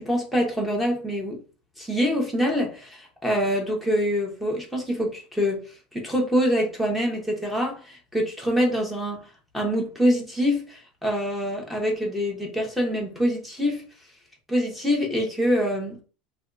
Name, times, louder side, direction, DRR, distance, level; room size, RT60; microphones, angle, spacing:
voice 1, 0.0-1.4 1.8-5.6 5.9-9.2 9.5-13.8 14.5-16.0, equal, ahead, 0.7 m, -25 dB
2.6 x 2.2 x 2.3 m
supercardioid pair, 120°, 5 cm